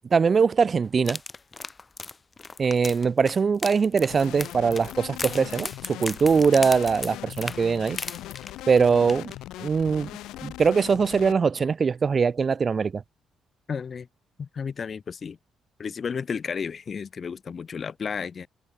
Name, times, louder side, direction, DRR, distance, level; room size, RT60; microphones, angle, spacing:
voice 1, 0.1-1.2 2.6-8.0 8.7-9.3 9.6-10.1 10.4-13.0, right 5 dB, 40° right, 0.4 m, -22 dB
sound 1, 1.0-8.8 9.1-9.3 9.7-9.8, left 4 dB, 30° left, 3.2 m, -37 dB
sound 2, 4.1-11.3, left 15 dB, 90° left, 1.3 m, -40 dB
voice 2, 13.7-14.1 14.4-15.4 15.8-18.5, left 6 dB, 45° left, 2.2 m, -32 dB
cardioid pair, 90°, 0 cm